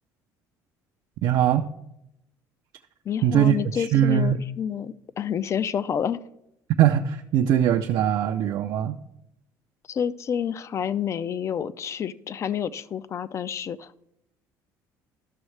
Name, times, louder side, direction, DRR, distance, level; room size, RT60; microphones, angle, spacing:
voice 1, 1.2-1.7 3.2-4.4 6.8-9.0, right 10 dB, 65° right, 5 dB, 0.4 m, -21 dB
voice 2, 3.1-6.2 9.9-14.0, left 8 dB, 40° left, 16 dB, 0.4 m, -29 dB
12.0 x 6.2 x 3.2 m, 0.84 s
cardioid pair, 110°, 8 cm